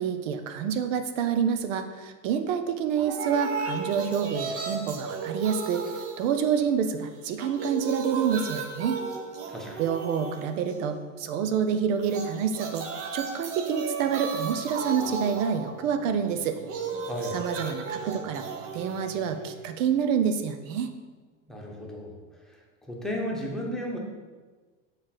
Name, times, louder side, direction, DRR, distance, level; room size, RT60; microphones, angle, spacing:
voice 1, 0.0-9.0 9.8-12.9 13.1-16.6 17.3-18.4 18.7-20.9, right 7 dB, 75° right, 8 dB, 0.8 m, -28 dB
sound 1, 3.0-6.9 7.2-11.0 12.0-20.0, right 4 dB, 35° right, 0.8 m, -35 dB
voice 2, 9.5-9.8 17.0-17.4 21.5-22.2 22.8-24.0, equal, ahead, -2 dB, 1.0 m, -34 dB
7.1 x 3.3 x 6.0 m, 1.4 s
supercardioid pair, 140°, 38 cm